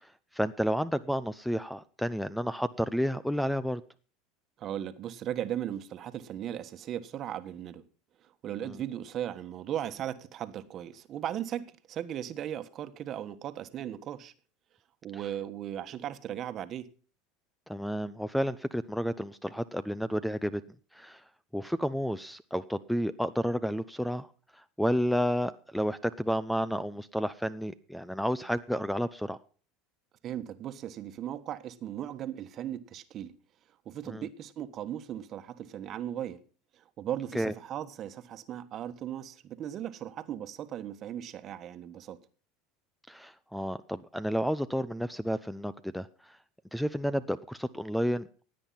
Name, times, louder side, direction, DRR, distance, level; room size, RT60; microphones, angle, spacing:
voice 1, 0.3-3.8 8.6-8.8 17.7-20.6 20.9-21.2 21.5-24.3 24.5-29.4 34.1-34.3 37.3-37.5 43.1-46.4 46.7-48.4, equal, ahead, 0.6 m, -31 dB
voice 2, 4.6-7.8 8.2-14.3 15.0-16.9 30.2-33.3 33.8-36.4 36.8-42.2, right 11 dB, 45° right, 1.3 m, -37 dB
16.0 x 9.1 x 5.7 m
supercardioid pair, 100°, 0 cm